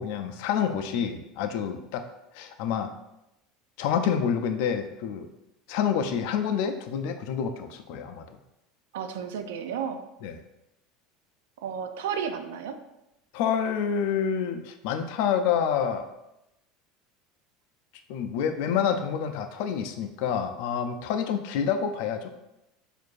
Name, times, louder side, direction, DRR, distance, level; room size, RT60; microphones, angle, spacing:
voice 1, 0.0-2.0 2.3-2.9 3.8-5.3 5.7-8.2 10.2-10.4 13.3-16.1 18.1-22.3, left 7 dB, 70° left, 7 dB, 0.4 m, -28 dB
voice 2, 8.9-10.0 11.6-12.8, right 7 dB, 90° right, 8 dB, 0.4 m, -32 dB
4.6 x 2.5 x 2.5 m, 0.90 s
supercardioid pair, 125°, 0 cm